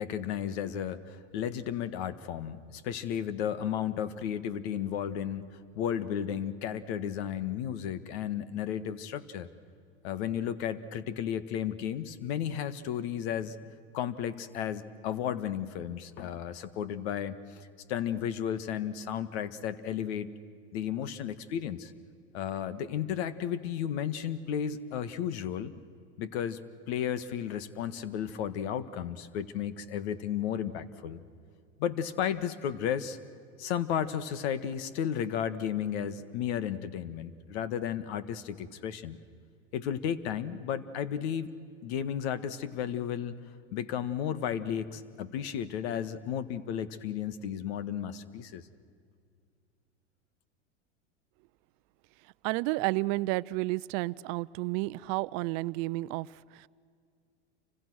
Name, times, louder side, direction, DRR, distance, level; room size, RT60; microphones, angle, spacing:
voice 1, 0.0-9.5 10.0-13.6 13.9-20.3 20.7-21.9 22.3-25.7 26.2-26.6 26.9-31.2 31.8-33.2 33.6-39.2 39.7-41.5 41.8-43.3 43.7-48.6, left 9 dB, 65° left, 14 dB, 1.7 m, -33 dB
voice 2, 52.4-56.7, right 21 dB, 50° right, 18 dB, 0.6 m, -31 dB
29.0 x 25.5 x 6.3 m, 2.2 s
hypercardioid pair, 105°, 35 cm